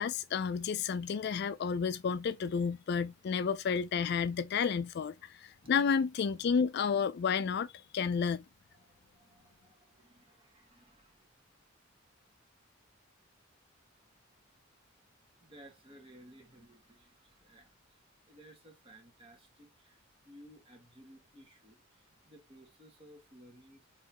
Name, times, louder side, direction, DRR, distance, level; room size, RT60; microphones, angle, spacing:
voice 1, 0.0-8.4, left 6 dB, 55° left, 0.3 m, -31 dB
voice 2, 8.7-11.6 15.4-23.9, right 1 dB, 25° right, 1.9 m, -58 dB
4.3 x 4.0 x 2.9 m
head